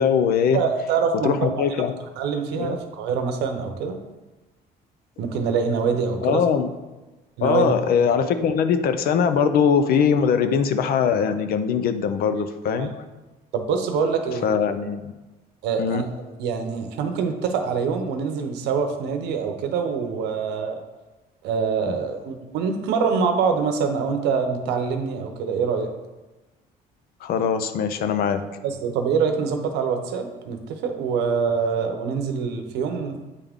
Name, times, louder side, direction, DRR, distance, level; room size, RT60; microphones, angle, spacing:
voice 1, 0.0-0.6 1.2-1.9 2.6-2.8 6.2-6.7 7.4-12.9 14.4-15.1 15.8-16.0 21.8-21.9 27.2-28.5, left 7 dB, 65° left, 10 dB, 0.5 m, -21 dB
voice 2, 0.5-1.7 2.2-4.0 5.2-6.4 7.4-7.7 12.7-12.9 13.5-14.4 15.6-16.1 16.4-20.8 21.4-25.9 28.6-33.2, right 6 dB, 85° right, 6 dB, 0.8 m, -25 dB
8.3 x 3.6 x 3.5 m, 1.1 s
cardioid pair, 110°, 17 cm